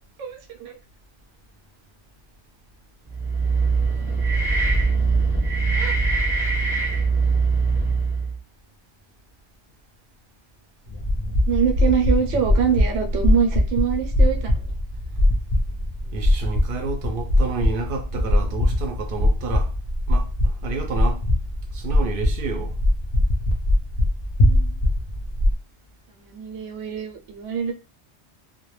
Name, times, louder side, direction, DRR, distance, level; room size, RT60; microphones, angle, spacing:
voice 1, 0.2-0.8 5.8-6.0 11.5-14.6 24.4-24.8 26.2-27.7, right 7 dB, 85° right, 0.9 m, -25 dB
sound 1, 3.1-8.4, right 4 dB, 5° right, 0.8 m, -22 dB
sound 2, 10.9-25.5, left 1 dB, 45° left, 0.6 m, -21 dB
voice 2, 16.1-19.7 20.1-21.2 21.7-22.8, right 3 dB, 60° right, 0.6 m, -30 dB
2.2 x 2.1 x 3.0 m
omnidirectional pair, 1.2 m